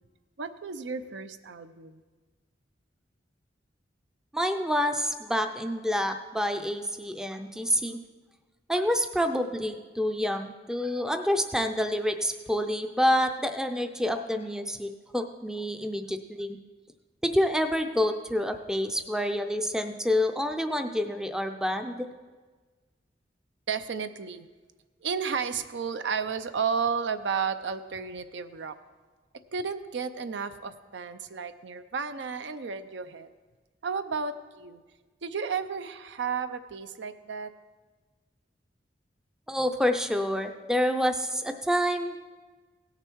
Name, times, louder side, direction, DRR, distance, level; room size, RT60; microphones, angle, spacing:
voice 1, 0.4-2.0 23.7-24.5 25.0-28.8 29.5-33.3 33.8-34.8 35.2-37.5, right 6 dB, 75° right, 11 dB, 0.6 m, -32 dB
voice 2, 4.3-8.0 8.7-16.6 17.2-22.1 39.5-42.3, equal, 5° right, 7 dB, 0.4 m, -28 dB
17.0 x 6.7 x 4.6 m, 1.4 s
head